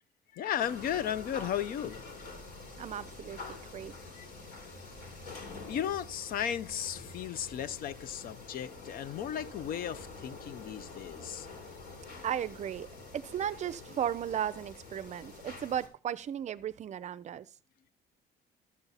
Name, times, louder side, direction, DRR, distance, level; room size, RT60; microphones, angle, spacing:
voice 1, 0.3-2.1 4.1-4.3 5.7-11.5, left 9 dB, 60° left, 0.5 m, -35 dB
sound 1, 0.6-15.9, left 3 dB, 75° left, 2.9 m, -47 dB
voice 2, 2.8-3.9 12.2-12.9 13.1-17.5, right 10 dB, 45° right, 0.5 m, -35 dB
12.5 x 6.9 x 4.0 m
cardioid pair, 110°, 17 cm